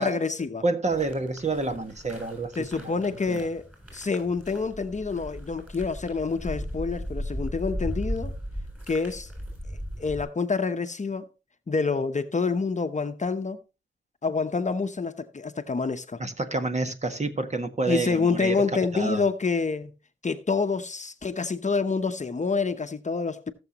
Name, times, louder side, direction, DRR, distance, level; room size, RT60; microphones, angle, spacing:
voice 1, 0.0-0.6 2.6-3.7 3.9-8.3 8.9-9.3 10.0-11.2 11.7-13.6 14.2-16.2 17.9-19.9 20.2-23.5, left 4 dB, 35° left, 0.9 m, -27 dB
voice 2, 0.6-2.9 3.3-3.5 16.2-18.6 18.9-19.2, right 3 dB, 35° right, 1.7 m, -28 dB
sound 1, 0.9-10.2, equal, 5° right, 7.3 m, -37 dB
18.0 x 7.1 x 3.0 m
cardioid pair, 75°, 20 cm